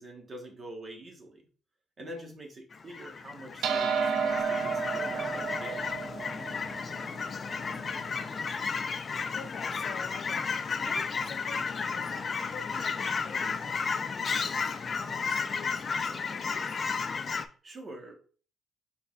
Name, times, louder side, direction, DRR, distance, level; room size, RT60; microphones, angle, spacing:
voice 1, 0.0-1.4 2.0-5.8 17.4-18.2, right 1 dB, 40° right, 2 dB, 1.3 m, -45 dB
voice 2, 2.0-2.3 6.8-8.6 9.3-10.5 10.8-16.8, left 5 dB, 65° left, 6 dB, 0.8 m, -48 dB
Fowl / Chirp tweet, 2.7-17.5, left 5 dB, 45° left, 0.4 m, -33 dB
sound 1, 3.6-8.3, right 6 dB, 75° right, 0.5 m, -32 dB
5.3 x 3.6 x 2.4 m, 0.40 s
cardioid pair, 90°, 0 cm